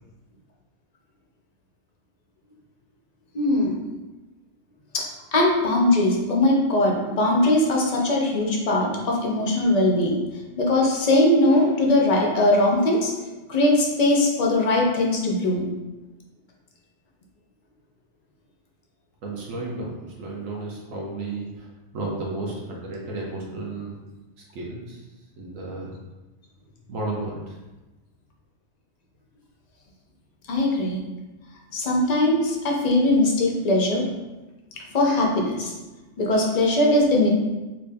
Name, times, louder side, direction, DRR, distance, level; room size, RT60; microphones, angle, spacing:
voice 1, 3.3-3.7 4.9-5.0 5.3-10.2 10.6-13.1 13.5-15.7 30.5-31.0 31.7-34.0 34.9-35.7 36.2-37.3, left 1 dB, 55° left, -1 dB, 0.4 m, -20 dB
voice 2, 19.2-21.7 21.9-23.9 24.5-25.0 25.4-25.9 26.9-27.5 36.3-36.5, right 2 dB, 75° right, -3 dB, 1.1 m, -33 dB
3.0 x 2.7 x 3.3 m, 1.1 s
omnidirectional pair, 1.4 m